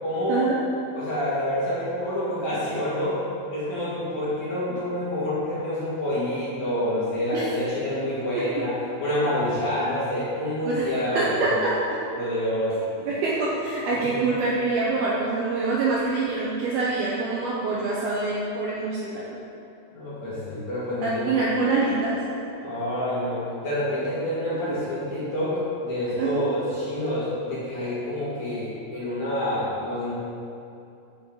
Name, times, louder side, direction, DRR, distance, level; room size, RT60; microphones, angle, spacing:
voice 1, 0.0-0.5 0.9-3.2 3.5-11.6 12.1-13.1 14.0-14.2 19.9-21.3 22.6-30.1, left 1 dB, 50° left, -10 dB, 2.6 m, -27 dB
voice 2, 11.1-11.7 13.1-19.2 21.0-22.2 26.2-26.5, right 3 dB, 75° right, -5 dB, 2.4 m, -25 dB
7.5 x 7.1 x 7.0 m, 2.7 s
omnidirectional pair, 5.4 m